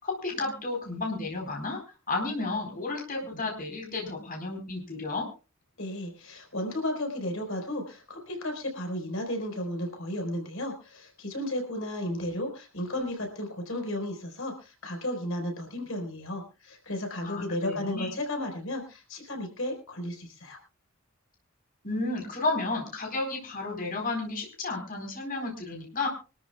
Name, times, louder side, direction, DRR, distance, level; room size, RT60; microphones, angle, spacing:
voice 1, 0.0-1.8 2.1-5.3 17.2-18.1 21.8-26.1, left 3 dB, 45° left, 1 dB, 4.2 m, -32 dB
voice 2, 5.8-20.6, left 1 dB, 70° left, 4 dB, 4.5 m, -34 dB
25.0 x 13.0 x 2.3 m, 0.32 s
head